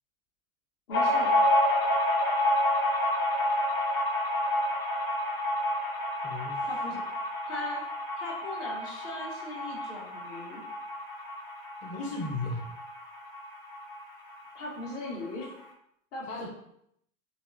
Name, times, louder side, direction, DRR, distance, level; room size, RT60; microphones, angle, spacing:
sound 1, 0.9-14.0 14.3-14.4 14.7-15.5, left 1 dB, 80° left, 0.8 m, -29 dB
voice 1, 0.9-1.4 6.6-7.0 7.4-7.8 8.2-10.6 14.5-15.5 16.1-16.5, left 2 dB, 60° left, -2 dB, 1.2 m, -39 dB
voice 2, 6.2-6.7 11.8-12.7 16.2-16.5, left 2 dB, 15° left, -2 dB, 0.5 m, -35 dB
4.0 x 2.1 x 2.6 m, 0.73 s
hypercardioid pair, 95°, 42 cm